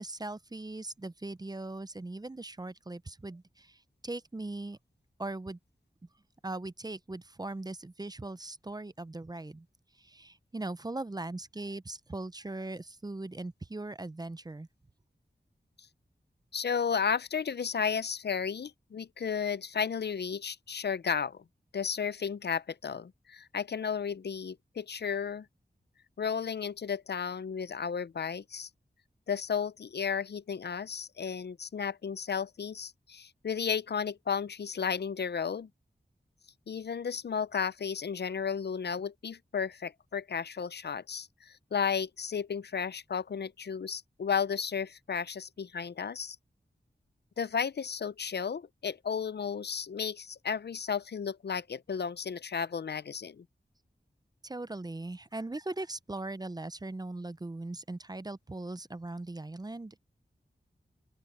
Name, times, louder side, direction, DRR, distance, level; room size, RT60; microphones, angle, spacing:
voice 1, 0.0-4.8 5.2-5.6 6.4-9.7 10.0-14.7 54.4-60.0, right 2 dB, 20° right, 0.5 m, -39 dB
voice 2, 16.5-21.4 21.7-25.5 26.2-28.7 29.3-35.7 36.7-46.4 47.4-53.4, left 6 dB, 65° left, 0.5 m, -33 dB
open air
wide cardioid pair, 85°, 18 cm